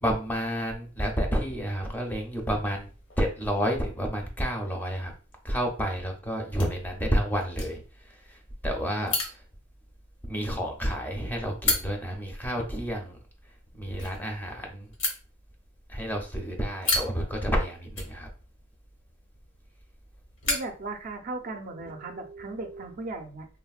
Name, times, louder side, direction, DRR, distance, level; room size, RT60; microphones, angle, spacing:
voice 1, 0.0-5.1 5.4-9.4 10.2-14.9 15.9-18.3, equal, 10° left, 2 dB, 0.5 m, -30 dB
Opening lighting and closing a Zippo, 2.0-21.6, left 2 dB, 65° left, 0.9 m, -37 dB
voice 2, 20.5-23.5, right 3 dB, 45° right, 5 dB, 0.5 m, -37 dB
3.2 x 2.1 x 2.3 m, 0.36 s
head